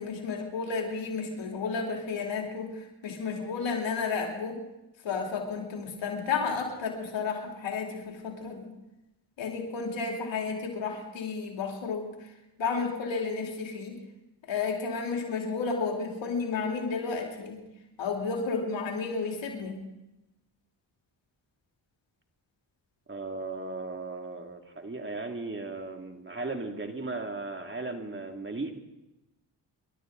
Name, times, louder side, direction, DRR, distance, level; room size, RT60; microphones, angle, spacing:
voice 1, 0.0-4.6 5.0-8.7 9.4-12.3 12.6-14.0 14.5-17.6 18.0-19.8, left 5 dB, 85° left, 0 dB, 3.3 m, -32 dB
voice 2, 23.1-28.8, right 3 dB, 25° right, 4 dB, 2.4 m, -36 dB
28.5 x 12.5 x 3.9 m, 0.98 s
cardioid pair, 60°, 44 cm